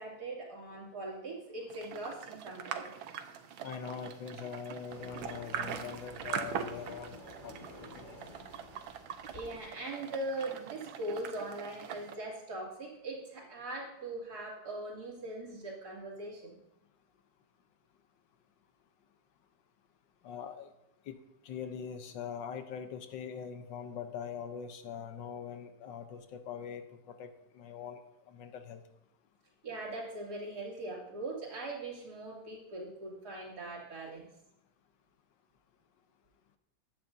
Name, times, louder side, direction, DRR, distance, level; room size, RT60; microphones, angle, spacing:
voice 1, 0.0-2.9 6.5-6.6 9.3-16.6 29.6-34.2, right 2 dB, 50° right, -4 dB, 3.2 m, -41 dB
sound 1, 1.7-12.2, right 8 dB, 85° right, 1.5 m, -42 dB
voice 2, 3.6-7.5 7.9-8.2 20.2-20.7 21.1-21.2 21.4-28.0 28.3-28.8, left 7 dB, 75° left, 8 dB, 1.5 m, -42 dB
sound 2, 4.9-9.7, left 1 dB, 30° left, 3.6 m, -51 dB
14.5 x 10.5 x 2.7 m, 0.86 s
omnidirectional pair, 2.1 m